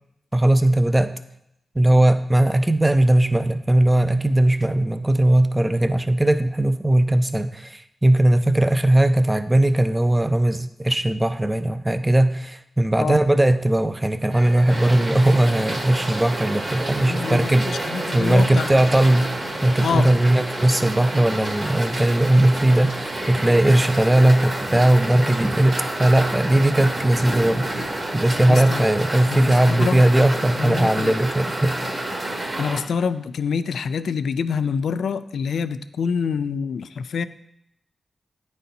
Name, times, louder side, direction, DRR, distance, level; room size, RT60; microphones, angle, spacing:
voice 1, 0.3-1.1 1.8-19.3 19.6-27.7 28.1-31.8, right 1 dB, 15° right, 11 dB, 0.5 m, -19 dB
Male speech man speaking, 14.3-19.8, right 1 dB, 85° right, 1.4 m, -36 dB
sound 1, 14.7-32.8, right 1 dB, 40° right, 1.4 m, -29 dB
voice 2, 17.1-18.8 19.8-20.1 28.5-28.9 29.3-30.0 30.6-31.2 32.6-37.3, left 6 dB, 90° left, 13 dB, 0.3 m, -26 dB
9.2 x 4.2 x 3.9 m, 0.79 s
cardioid pair, 70°, 0 cm